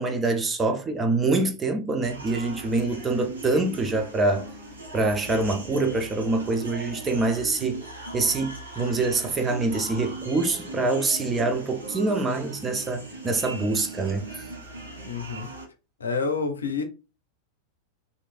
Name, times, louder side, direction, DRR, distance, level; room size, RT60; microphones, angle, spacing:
voice 1, 0.0-4.5 4.9-7.8 8.1-14.4, right 3 dB, 20° right, 0.6 m, -25 dB
sound 1, 2.0-15.7, right 2 dB, 75° right, 1.0 m, -39 dB
voice 2, 15.1-15.5 16.0-16.8, left 5 dB, 75° left, 0.6 m, -28 dB
3.1 x 2.6 x 2.5 m
figure-of-eight pair, 90°, 0 cm